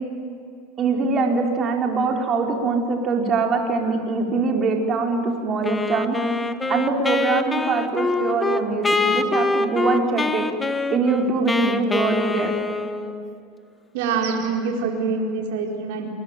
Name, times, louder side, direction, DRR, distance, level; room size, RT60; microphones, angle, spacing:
voice 1, 0.8-6.2 6.7-10.4 10.9-12.5, right 4 dB, 35° right, 2 dB, 5.0 m, -23 dB
Wind instrument woodwind instrument, 5.6-13.3, left 3 dB, 15° left, 1.6 m, -24 dB
voice 2, 13.9-16.1, right 5 dB, 70° right, 1 dB, 4.4 m, -25 dB
27.5 x 23.0 x 9.3 m, 2.5 s
hypercardioid pair, 100°, 0 cm